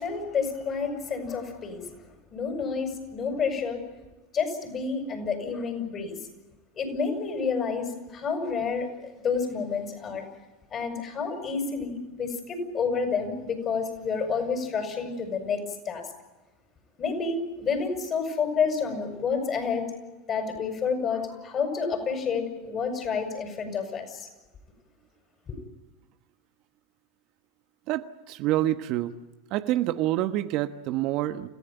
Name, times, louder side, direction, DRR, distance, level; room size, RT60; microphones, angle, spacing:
voice 1, 0.0-1.9 2.3-3.8 4.3-6.1 6.8-10.3 10.7-15.6 15.9-16.0 17.0-19.8 20.3-24.3 25.5-25.6, left 5 dB, 35° left, 5 dB, 7.3 m, -29 dB
voice 2, 27.9-29.1 29.5-31.5, right 14 dB, 50° right, 9 dB, 1.2 m, -27 dB
29.5 x 15.5 x 9.2 m, 1.1 s
hypercardioid pair, 90°, 0 cm